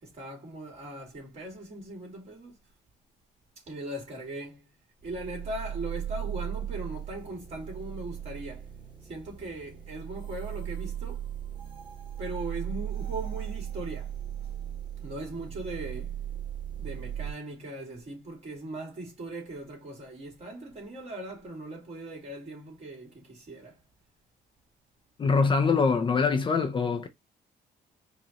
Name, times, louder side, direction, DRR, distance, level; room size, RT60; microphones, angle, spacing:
voice 1, 0.0-2.5 3.7-4.7 5.0-8.7 9.0-11.2 12.2-14.2 15.0-16.2 16.8-23.8, right 1 dB, 40° right, 2.5 m, -39 dB
sound 1, 5.0-17.3, right 10 dB, 25° right, 1.8 m, -37 dB
voice 2, 25.2-27.1, left 4 dB, 30° left, 0.6 m, -24 dB
4.9 x 2.5 x 2.9 m
cardioid pair, 110°, 17 cm